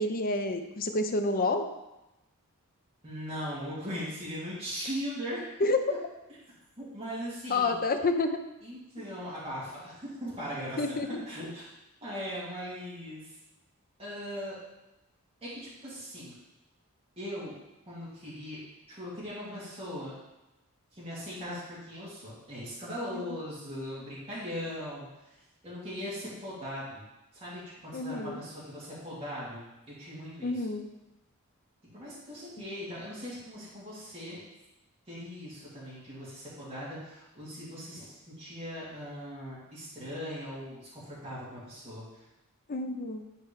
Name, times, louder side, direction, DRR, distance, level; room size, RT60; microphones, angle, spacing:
voice 1, 0.0-1.6 5.6-5.8 7.5-8.4 9.0-9.1 10.8-11.1 23.1-23.2 27.9-28.4 30.4-30.9 42.7-43.2, left 2 dB, 40° left, 6 dB, 0.6 m, -29 dB
voice 2, 3.0-6.0 6.8-7.8 8.6-11.0 11.3-11.7 12.0-13.3 14.0-14.5 15.4-16.3 17.2-17.5 17.9-18.6 18.9-20.1 20.9-25.1 25.6-27.0 27.3-29.7 30.0-30.6 31.9-34.4 35.1-42.1, equal, 25° right, -9 dB, 2.5 m, -39 dB
10.5 x 4.4 x 3.2 m, 0.97 s
head